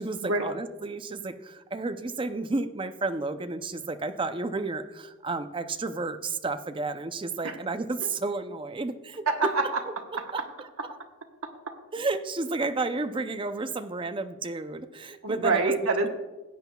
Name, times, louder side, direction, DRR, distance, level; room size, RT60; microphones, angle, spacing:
voice 1, 0.0-9.3 10.3-10.4 11.9-15.7, right 3 dB, 25° right, 8 dB, 0.5 m, -31 dB
voice 2, 9.3-9.8 10.1-10.5 10.8-11.0 11.4-11.7 15.2-16.1, right 3 dB, 80° right, 3 dB, 1.2 m, -27 dB
16.5 x 9.0 x 2.3 m, 1.1 s
head